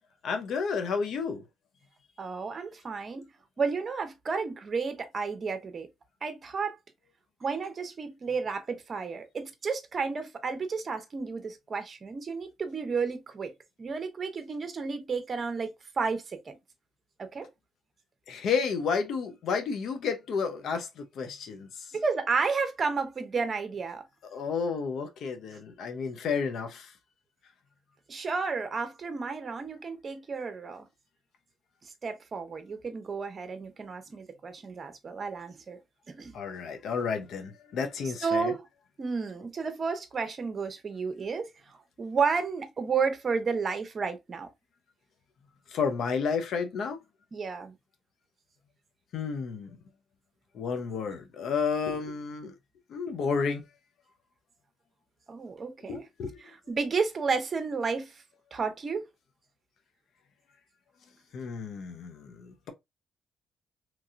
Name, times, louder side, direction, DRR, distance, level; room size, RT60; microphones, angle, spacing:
voice 1, 0.2-1.4 18.3-21.9 24.3-26.9 36.3-38.5 45.7-47.0 49.1-49.8 50.5-52.5 52.9-53.6 55.9-56.5 61.3-62.7, left 5 dB, 70° left, 0.7 m, -31 dB
voice 2, 2.2-3.3 3.6-5.9 6.2-6.8 7.4-13.5 13.8-16.5 17.2-17.5 21.9-24.0 28.1-30.9 32.0-35.8 36.1-36.4 38.2-38.6 39.0-44.5 47.3-47.8 55.3-56.0 56.7-58.2 58.5-59.1, right 5 dB, 40° right, 0.8 m, -32 dB
3.0 x 2.8 x 2.5 m
cardioid pair, 90°, 0 cm